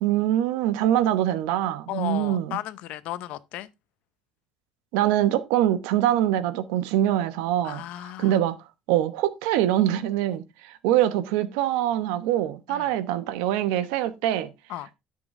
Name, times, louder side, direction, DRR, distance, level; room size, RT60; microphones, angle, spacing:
voice 1, 0.0-2.6 4.9-7.8 8.2-8.5 8.9-14.5, right 12 dB, 85° right, 1.0 m, -24 dB
voice 2, 1.9-3.7 7.6-8.4 12.7-12.9 14.7-14.9, left 15 dB, 70° left, 0.7 m, -34 dB
9.8 x 7.0 x 3.6 m
cardioid pair, 110°, 2 cm